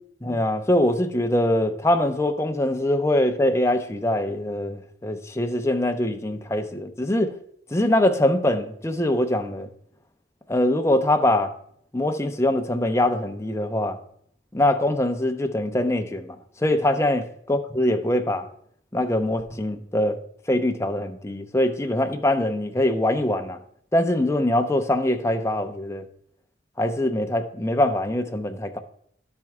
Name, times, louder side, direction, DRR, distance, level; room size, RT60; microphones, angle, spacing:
voice 1, 0.2-7.4 7.7-9.7 10.5-11.5 11.9-14.0 14.5-18.5 18.9-20.2 20.5-23.6 23.9-26.0 26.8-28.8, left 1 dB, 15° left, 0.6 m, -23 dB
12.0 x 4.4 x 3.5 m
head